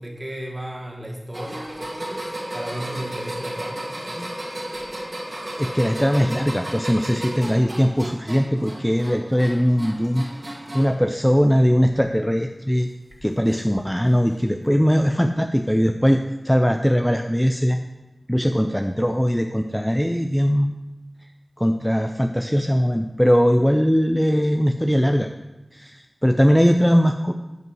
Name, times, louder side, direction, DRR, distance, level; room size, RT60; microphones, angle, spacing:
voice 1, 0.0-3.9, right 1 dB, 25° right, -1 dB, 2.0 m, -34 dB
sound 1, 1.3-11.0 11.4-12.0 13.1-13.2 14.3-14.4, right 1 dB, 45° right, 2.1 m, -34 dB
voice 2, 5.6-12.9 13.2-17.8 18.3-20.7 21.6-25.3 25.7-27.3, equal, 5° left, 6 dB, 0.4 m, -20 dB
9.2 x 5.6 x 6.2 m, 1.1 s
wide cardioid pair, 60°, 0 cm